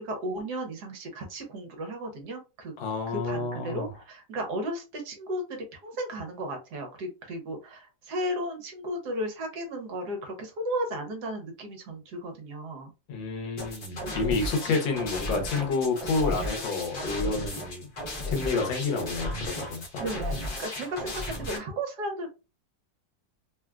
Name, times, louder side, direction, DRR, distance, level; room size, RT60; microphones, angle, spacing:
voice 1, 0.0-2.7 3.1-12.9 20.0-20.3 20.6-22.3, right 1 dB, 65° right, 1.2 m, -34 dB
voice 2, 2.8-3.9 13.1-17.9 18.2-19.8, left 3 dB, 85° left, 1.6 m, -29 dB
sound 1, 13.6-21.6, left 1 dB, 40° left, 0.8 m, -34 dB
3.6 x 2.3 x 2.2 m
omnidirectional pair, 2.0 m